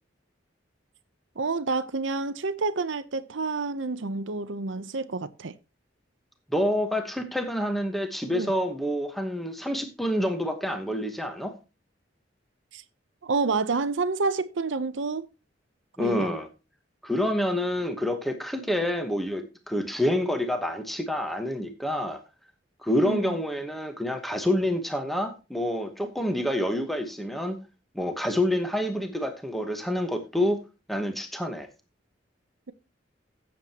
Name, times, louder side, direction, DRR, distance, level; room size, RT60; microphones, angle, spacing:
voice 1, 1.4-5.5 8.3-8.5 12.7-12.8 13.2-15.3 16.0-16.3 23.0-23.3, right 4 dB, 85° right, 0.7 m, -29 dB
voice 2, 6.5-11.5 16.0-16.5 17.0-22.2 22.8-27.6 27.9-30.6 30.9-31.7, left 1 dB, ahead, 1.1 m, -27 dB
16.0 x 7.4 x 2.9 m
head